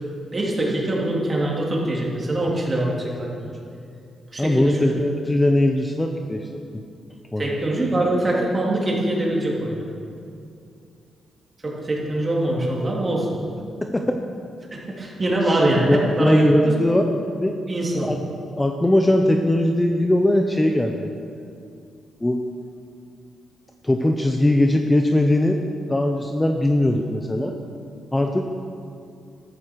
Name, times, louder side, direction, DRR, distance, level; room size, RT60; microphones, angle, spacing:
voice 1, 0.3-3.5 4.3-5.0 7.4-9.8 11.6-13.3 14.7-16.7 17.7-18.1, right 1 dB, 25° right, -4 dB, 3.2 m, -23 dB
voice 2, 4.4-6.5 6.7-6.8 7.3-7.5 13.8-14.0 15.9-17.0 17.4-17.6 17.9-18.2 18.6-21.1 22.2-22.4 23.8-25.6 25.9-27.5 28.1-28.4, left 1 dB, 10° left, 3 dB, 0.8 m, -20 dB
13.5 x 13.5 x 4.8 m, 2.4 s
cardioid pair, 120°, 0 cm